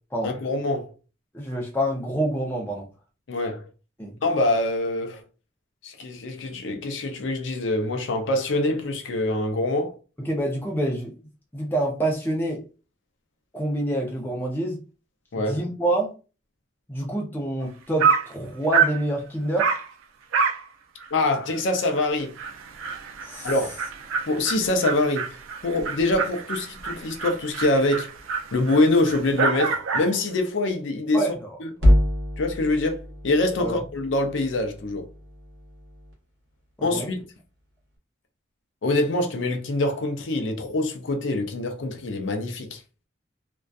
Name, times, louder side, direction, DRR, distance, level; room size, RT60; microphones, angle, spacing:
voice 1, 0.2-0.9 3.3-3.6 4.2-5.2 5.8-9.9 15.3-15.6 21.1-22.3 23.4-23.7 24.3-25.3 25.6-28.1 28.5-31.3 31.6-31.7 32.4-35.0 36.8-37.2 38.8-42.8, left 2 dB, 70° left, 0.5 m, -24 dB
voice 2, 1.3-2.9 4.0-4.1 10.2-11.1 11.5-12.6 13.5-14.8 15.4-16.1 16.9-19.7 23.2-23.5 31.1-31.5 31.8-32.0 33.6-33.7 36.8-37.1, right 1 dB, 10° left, 0.5 m, -27 dB
Dog, 17.6-17.7 18.0-18.3 18.7-19.0 19.6-19.9 20.3-20.6 21.0-21.1 21.5-21.6 22.0-22.1 22.4-30.2, right 6 dB, 85° right, 0.4 m, -27 dB
sound 1, 31.8-36.1, left 1 dB, 65° right, 0.9 m, -25 dB
2.5 x 2.2 x 2.3 m
head